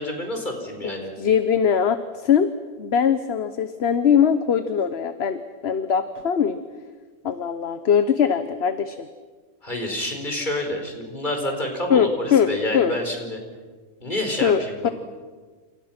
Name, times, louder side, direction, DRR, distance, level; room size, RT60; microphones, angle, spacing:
voice 1, 0.0-1.1 9.6-13.4 14.0-14.9, left 1 dB, 40° left, 3 dB, 5.2 m, -28 dB
voice 2, 1.2-2.5 2.8-6.6 7.2-9.1 11.9-12.9 14.4-14.9, left 7 dB, 55° left, 10 dB, 1.2 m, -21 dB
29.5 x 28.5 x 5.9 m, 1.5 s
omnidirectional pair, 1.3 m